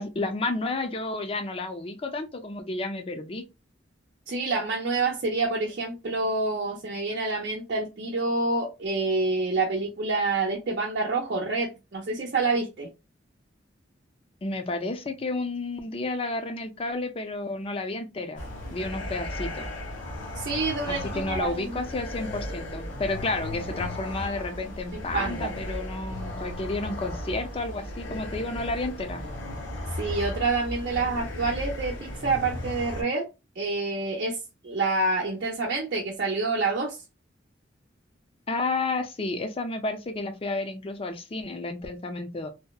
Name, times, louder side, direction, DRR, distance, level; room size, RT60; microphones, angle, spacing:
voice 1, 0.0-3.4 14.4-18.4 18.7-19.7 20.9-29.2 38.5-42.5, left 2 dB, 30° left, 0.5 m, -31 dB
voice 2, 4.3-12.9 20.3-21.8 24.9-25.6 29.9-33.3 33.6-34.4 34.6-37.0, right 3 dB, 55° right, 0.6 m, -27 dB
sound 1, 18.4-33.0, left 1 dB, 80° left, 1.2 m, -35 dB
2.7 x 2.1 x 2.2 m
head